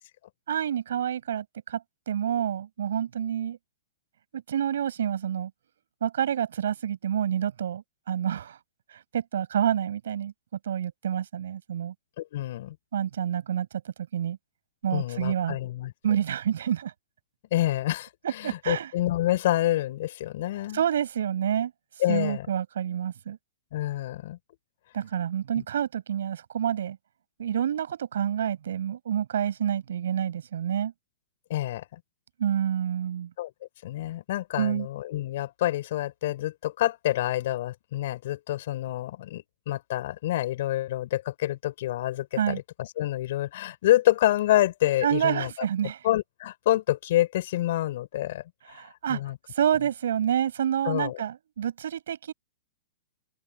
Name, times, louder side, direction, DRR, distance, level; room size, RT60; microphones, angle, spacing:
voice 1, 0.5-1.8 2.1-3.6 4.3-5.5 6.0-8.6 8.9-10.3 10.7-11.9 12.9-14.4 14.8-15.6 16.0-16.9 18.2-18.9 20.7-21.7 22.1-23.4 24.9-27.0 27.4-30.9 32.4-33.3 34.6-34.9 42.4-42.6 45.0-46.0 48.7-49.2 49.5-52.3, right 9 dB, 75° right, 7.2 m, -28 dB
voice 2, 12.2-12.8 14.9-15.9 17.5-20.8 22.0-22.5 23.7-24.4 31.5-32.0 33.4-33.5 33.8-45.5 46.0-48.8 49.1-49.4 50.8-51.2, left 14 dB, 50° left, 6.4 m, -27 dB
open air
hypercardioid pair, 165°, 0 cm